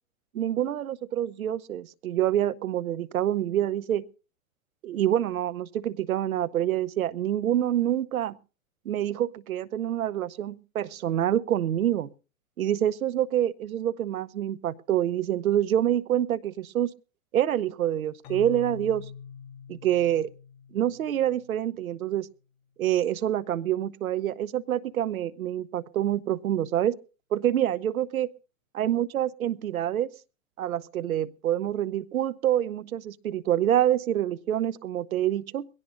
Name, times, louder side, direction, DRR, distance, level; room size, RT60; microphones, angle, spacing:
voice 1, 0.3-4.0 4.8-8.4 8.8-12.1 12.6-16.9 17.3-19.1 19.7-20.3 20.7-22.3 22.8-27.0 27.3-28.3 28.7-30.1 30.6-35.7, right 11 dB, 85° right, 18 dB, 0.9 m, -26 dB
Keyboard (musical), 18.2-21.9, left 7 dB, 40° left, 1.6 m, -44 dB
22.0 x 17.0 x 2.5 m, 0.34 s
hypercardioid pair, 115°, 41 cm